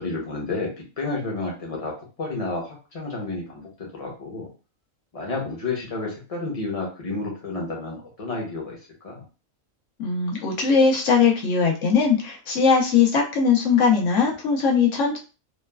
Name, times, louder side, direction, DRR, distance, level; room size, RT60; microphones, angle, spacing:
voice 1, 0.0-4.5 5.1-8.8 9.0-9.2, left 3 dB, 30° left, -1 dB, 0.8 m, -31 dB
voice 2, 10.0-15.2, left 5 dB, 65° left, -1 dB, 1.0 m, -20 dB
3.1 x 2.2 x 2.2 m, 0.33 s
omnidirectional pair, 1.4 m